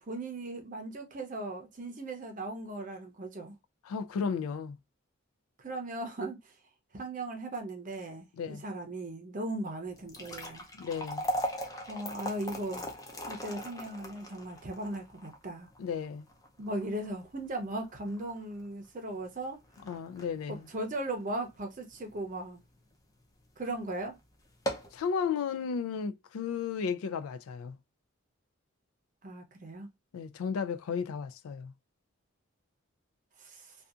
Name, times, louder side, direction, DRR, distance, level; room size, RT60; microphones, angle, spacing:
voice 1, 0.1-3.5 5.6-6.5 6.9-10.7 11.9-12.9 13.3-15.7 16.6-19.6 20.5-22.6 23.6-24.2 29.2-29.9 33.4-33.7, right 2 dB, 40° right, 0.6 m, -38 dB
voice 2, 3.8-4.8 8.4-8.6 10.7-11.3 15.8-16.3 19.8-20.7 24.9-27.8 30.1-31.7, left 6 dB, 85° left, 0.3 m, -34 dB
sound 1, 9.9-22.2 22.6-22.7 23.4-23.6 23.9-24.0 24.4-25.0, equal, 15° left, 0.5 m, -40 dB
2.7 x 2.3 x 2.3 m
head